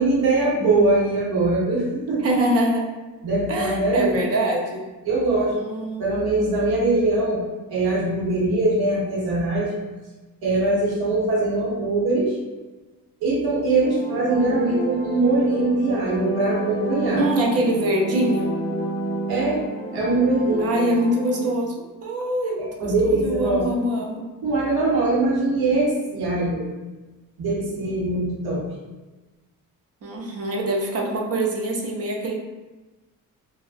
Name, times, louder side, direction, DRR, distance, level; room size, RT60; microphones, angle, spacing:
voice 1, 0.0-2.4 3.2-4.2 5.0-5.5 6.0-7.4 7.7-9.7 10.4-12.4 13.2-17.2 19.3-19.6 19.9-20.7 22.6-23.7 24.4-26.6 27.4-28.6, right 2 dB, 85° right, -6 dB, 0.9 m, -22 dB
voice 2, 2.2-2.9 3.5-4.8 5.7-6.0 17.2-18.5 20.6-24.2 30.0-32.3, right 1 dB, 40° right, 0 dB, 0.5 m, -24 dB
sound 1, 13.6-21.5, right 1 dB, 40° left, 0.5 m, -29 dB
3.5 x 2.0 x 2.4 m, 1.2 s
wide cardioid pair, 175°, 36 cm